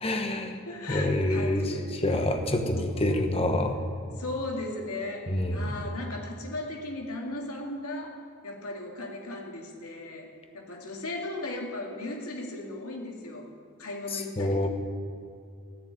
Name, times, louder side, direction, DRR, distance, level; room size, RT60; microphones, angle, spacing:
voice 1, 0.0-0.6 0.9-1.7 2.0-3.8 5.3-5.7 14.1-14.7, left 1 dB, 25° left, 5 dB, 1.1 m, -27 dB
voice 2, 0.7-2.1 2.7-3.2 3.9-8.2 8.4-10.3 10.5-13.5 13.8-14.7, left 2 dB, 85° left, 1 dB, 2.3 m, -37 dB
13.5 x 6.9 x 9.3 m, 2.3 s
head